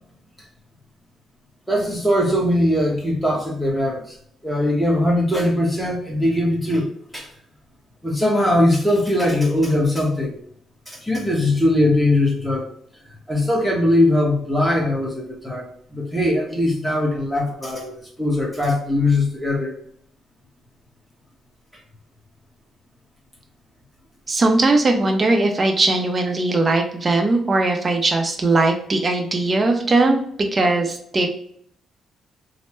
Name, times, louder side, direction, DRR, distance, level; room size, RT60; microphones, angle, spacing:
voice 1, 1.7-4.1 4.4-7.3 8.0-10.4 10.9-12.7 13.3-19.7, left 1 dB, ahead, -1 dB, 1.1 m, -20 dB
voice 2, 24.3-30.2 30.5-31.3, right 2 dB, 30° right, 3 dB, 0.7 m, -19 dB
3.2 x 2.1 x 3.0 m, 0.65 s
cardioid pair, 90°, 0 cm